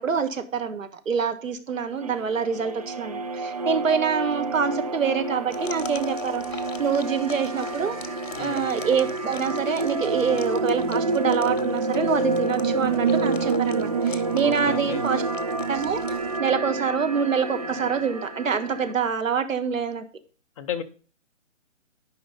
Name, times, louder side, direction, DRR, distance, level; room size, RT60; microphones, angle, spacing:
voice 1, 0.0-8.0 8.4-15.2 15.7-16.0 16.4-20.0, right 6 dB, 80° right, 9 dB, 1.4 m, -26 dB
sound 1, 2.0-18.9, right 3 dB, 30° right, 0.4 m, -28 dB
sound 2, 2.7-5.9 6.4-10.1 11.8-14.1 14.7-14.8, equal, ahead, 3.3 m, -52 dB
sound 3, 5.5-16.4, left 7 dB, 75° left, 1.0 m, -42 dB
voice 2, 14.4-15.1 20.6-20.8, left 9 dB, 25° left, 6 dB, 0.7 m, -33 dB
10.5 x 5.1 x 3.9 m, 0.38 s
hypercardioid pair, 145°, 39 cm